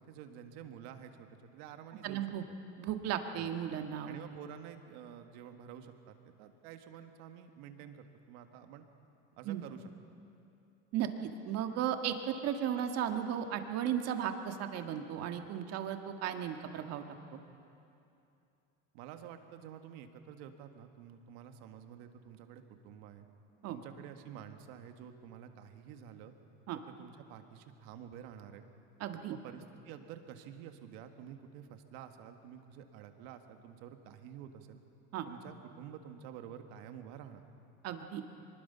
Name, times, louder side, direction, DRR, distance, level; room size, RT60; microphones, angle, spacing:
voice 1, 0.0-2.3 3.3-3.5 4.1-8.9 9.4-9.9 18.9-23.3 23.7-26.3 26.9-28.7 29.3-34.8 35.2-37.4, right 9 dB, 70° right, 6 dB, 1.7 m, -50 dB
voice 2, 2.0-2.4 2.8-4.2 9.4-9.6 10.9-17.0 17.3-17.4 23.6-23.8 26.7-26.8 29.0-29.4 35.1-35.3 37.8-38.2, right 9 dB, 55° right, 6 dB, 1.7 m, -35 dB
24.0 x 20.5 x 5.7 m, 2.7 s
supercardioid pair, 115°, 30 cm